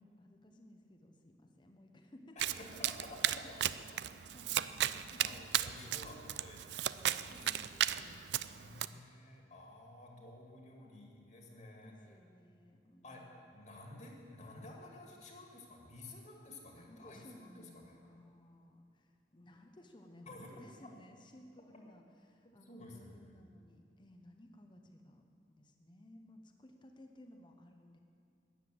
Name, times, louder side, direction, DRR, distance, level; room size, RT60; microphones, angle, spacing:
voice 1, 0.0-3.5 3.9-5.8 7.3-9.0 11.6-13.4 16.7-28.0, left 1 dB, 25° left, 4 dB, 0.9 m, -59 dB
voice 2, 2.4-3.6 5.2-7.5 8.5-12.1 13.0-18.0 20.3-20.5 22.6-23.1, left 2 dB, 45° left, 0 dB, 2.1 m, -52 dB
Domestic sounds home sounds, 2.4-8.9, right 11 dB, 75° right, 0.4 m, -36 dB
13.5 x 9.9 x 7.7 m, 2.5 s
head